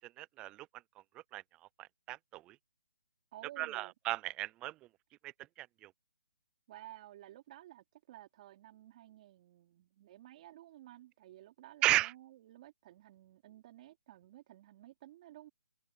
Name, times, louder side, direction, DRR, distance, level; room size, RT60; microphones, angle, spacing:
voice 1, 0.2-0.7 1.3-1.4 1.8-2.6 3.6-4.7 5.2-5.3 5.6-5.9 11.8-12.1, right 16 dB, 10° right, 0.3 m, -34 dB
voice 2, 3.3-3.9 6.7-15.5, right 14 dB, 35° right, 3.7 m, -54 dB
hypercardioid pair, 160°, 7 cm